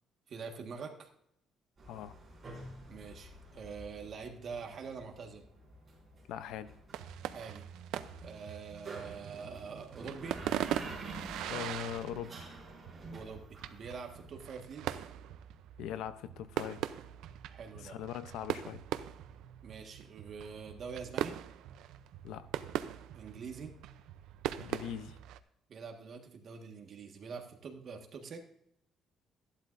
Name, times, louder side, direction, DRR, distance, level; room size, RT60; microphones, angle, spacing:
voice 1, 0.3-1.1 2.9-5.4 7.3-7.7 8.2-10.4 13.1-15.0 17.5-18.0 19.6-21.4 23.1-23.8 25.7-28.4, right 5 dB, 40° right, 3 dB, 1.6 m, -45 dB
sound 1, 1.8-14.3, right 2 dB, 25° right, 4.2 m, -49 dB
voice 2, 6.3-6.8 11.4-12.5 15.8-16.9 17.8-18.8 22.2-22.5 24.6-25.2, left 10 dB, 85° left, 13 dB, 0.7 m, -41 dB
sound 2, 6.9-25.4, right 12 dB, 85° right, 0.6 m, -41 dB
14.0 x 11.5 x 2.6 m, 0.73 s
cardioid pair, 165°, 0 cm